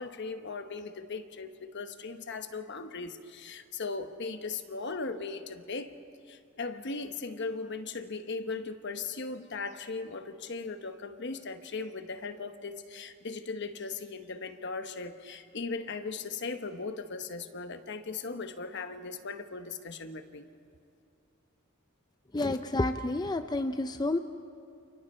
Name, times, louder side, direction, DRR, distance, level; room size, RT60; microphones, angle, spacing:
voice 1, 0.0-5.9 6.3-20.5, left 4 dB, 60° left, 8 dB, 1.1 m, -38 dB
voice 2, 22.3-24.2, left 2 dB, 20° left, 8 dB, 0.5 m, -29 dB
29.0 x 28.5 x 4.4 m, 2.4 s
head